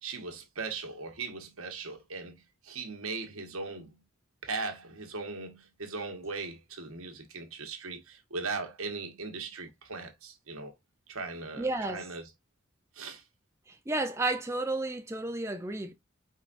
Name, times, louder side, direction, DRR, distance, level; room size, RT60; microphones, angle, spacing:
voice 1, 0.0-4.0 4.4-10.7 11.1-12.3 12.9-13.2, right 4 dB, 85° right, 1.3 m, -39 dB
voice 2, 11.6-12.0 13.7-15.9, right 2 dB, 15° right, 0.4 m, -32 dB
5.0 x 4.0 x 2.5 m
head